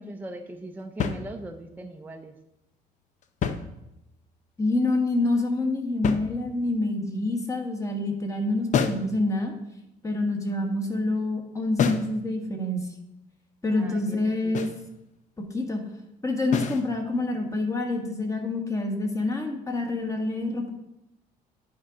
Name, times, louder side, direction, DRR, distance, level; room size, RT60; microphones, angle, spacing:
voice 1, 0.0-2.4 13.7-14.8, right 2 dB, 10° right, 4 dB, 0.5 m, -40 dB
sound 1, 1.0-1.8 3.2-4.3 6.0-6.8 8.7-9.2 11.8-12.2 14.5-14.9 16.5-16.9, left 6 dB, 45° left, 0.6 m, -29 dB
voice 2, 4.6-9.5 10.0-12.8 13.6-14.7 15.4-15.8 16.2-20.7, left 2 dB, 20° left, 3 dB, 1.4 m, -27 dB
9.9 x 3.7 x 4.9 m, 0.86 s
cardioid pair, 110°, 17 cm